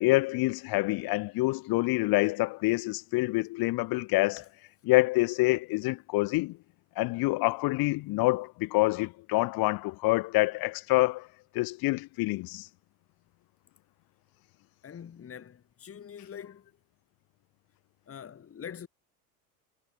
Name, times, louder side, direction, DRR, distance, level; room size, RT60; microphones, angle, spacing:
voice 1, 0.0-4.4 4.9-6.6 7.0-11.3 11.5-12.7, left 21 dB, 50° left, 1.9 m, -26 dB
voice 2, 14.8-16.7 18.1-18.9, left 8 dB, 30° left, 4.9 m, -44 dB
hypercardioid pair, 90°, 46 cm